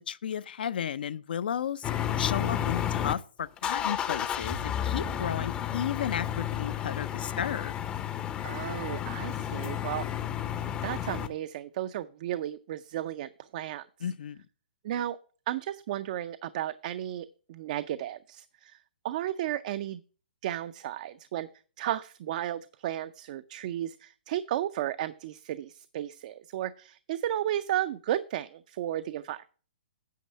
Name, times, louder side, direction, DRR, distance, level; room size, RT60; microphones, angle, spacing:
voice 1, 0.1-1.9 2.2-7.7 14.0-14.4, left 9 dB, 65° left, 0.5 m, -33 dB
sound 1, 1.8-3.1 3.6-11.3, left 10 dB, 15° left, 0.6 m, -32 dB
voice 2, 8.4-10.1 10.8-13.9 14.8-15.2 15.5-18.8 19.0-20.0 20.4-21.5 21.8-29.5, right 12 dB, 45° right, 0.4 m, -34 dB
9.3 x 5.3 x 5.4 m
hypercardioid pair, 135°, 5 cm